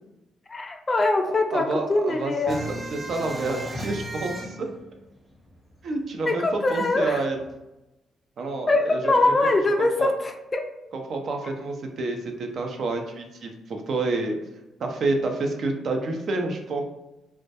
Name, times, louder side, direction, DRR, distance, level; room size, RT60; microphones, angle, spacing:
voice 1, 0.5-2.7 6.2-7.2 8.7-10.7, left 2 dB, 30° left, 5 dB, 0.3 m, -23 dB
voice 2, 1.5-4.7 5.8-7.4 8.4-9.5 9.8-10.1 10.9-14.4 14.8-16.8, right 2 dB, 60° right, 3 dB, 0.4 m, -29 dB
sound 1, 2.5-5.8 6.1-6.2 6.5-7.5, right 1 dB, 10° right, 0.7 m, -36 dB
2.2 x 2.0 x 2.7 m, 0.98 s
cardioid pair, 90°, 0 cm